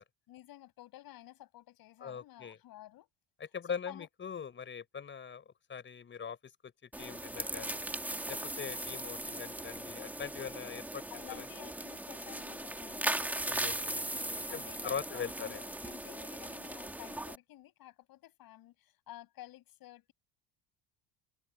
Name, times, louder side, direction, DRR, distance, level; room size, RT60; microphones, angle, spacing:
voice 1, 0.3-3.1 3.7-4.1 11.1-13.3 14.3-20.1, left 15 dB, 55° left, 6.6 m, -52 dB
voice 2, 2.0-2.6 3.4-5.4 5.7-6.4 6.6-6.7 7.0-7.8 8.3-11.0 11.4-11.5 13.5-14.1 14.5-15.6, left 7 dB, 30° left, 5.3 m, -41 dB
sound 1, 6.9-17.4, right 1 dB, 5° right, 2.4 m, -38 dB
cardioid pair, 130°, 41 cm